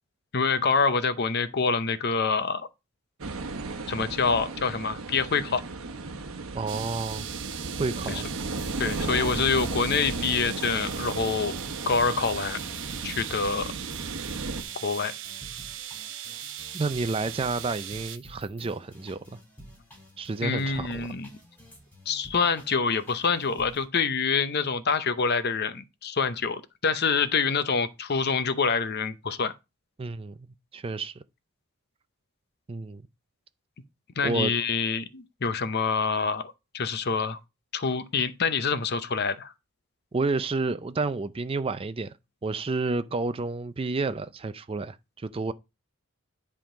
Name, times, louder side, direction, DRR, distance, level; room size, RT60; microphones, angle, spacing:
voice 1, 0.3-2.7 3.9-5.6 8.1-8.2 8.8-11.5 11.8-12.6 13.0-13.7 14.8-15.1 20.4-21.3 22.1-29.5 34.2-37.4 37.7-39.5, left 5 dB, 50° left, 0.7 m, -26 dB
sound 1, 3.2-14.6, right 3 dB, 75° right, 1.0 m, -35 dB
voice 2, 6.5-7.3 7.8-8.3 16.7-19.2 20.2-21.1 30.0-30.4 30.7-31.1 32.7-33.0 34.2-34.5 40.1-42.1 42.4-45.5, right 3 dB, 25° right, 0.4 m, -30 dB
sound 2, 6.7-18.2, right 11 dB, 60° right, 0.7 m, -39 dB
sound 3, 7.8-23.8, equal, 10° left, 3.2 m, -50 dB
10.5 x 3.7 x 4.9 m
head